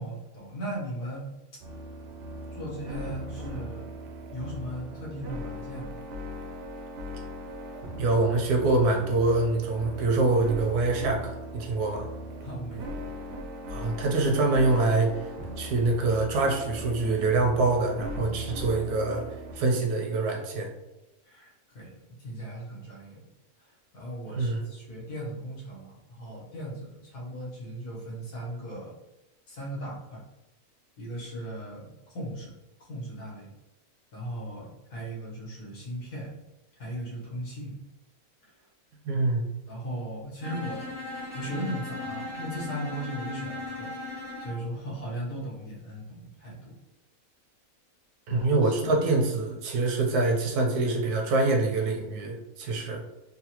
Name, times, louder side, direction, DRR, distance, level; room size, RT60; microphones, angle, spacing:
voice 1, 0.0-1.6 2.5-3.9 4.3-6.0 12.4-13.0 21.2-23.2 23.6-23.7 23.9-29.0 29.5-30.2 31.0-32.5 32.8-33.5 34.1-36.3 36.8-37.8 39.1-39.2 39.7-46.8 48.3-48.9, equal, 80° left, -5 dB, 1.7 m, -38 dB
sound 1, 1.6-19.5, equal, 65° right, 0.7 m, -39 dB
voice 2, 8.0-12.1 13.7-15.3 15.6-19.2 19.5-20.7 24.3-24.7 39.0-39.4 48.3-53.0, right 3 dB, 85° right, 1 dB, 1.2 m, -25 dB
Bowed string instrument, 40.4-44.6, left 2 dB, 60° left, 1.3 m, -37 dB
3.9 x 2.1 x 2.9 m, 0.97 s
omnidirectional pair, 1.6 m